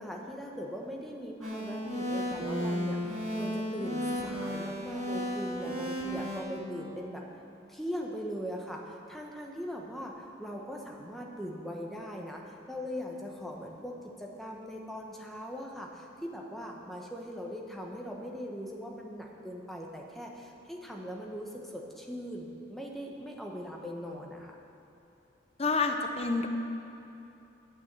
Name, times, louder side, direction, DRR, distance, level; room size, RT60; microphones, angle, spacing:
voice 1, 0.0-7.2 7.7-24.6, equal, ahead, -1 dB, 1.0 m, -40 dB
sound 1, 1.4-6.4, equal, 35° right, 3.0 m, -34 dB
voice 2, 25.6-26.5, left 3 dB, 30° left, 5 dB, 0.6 m, -28 dB
9.2 x 8.4 x 8.2 m, 2.9 s
head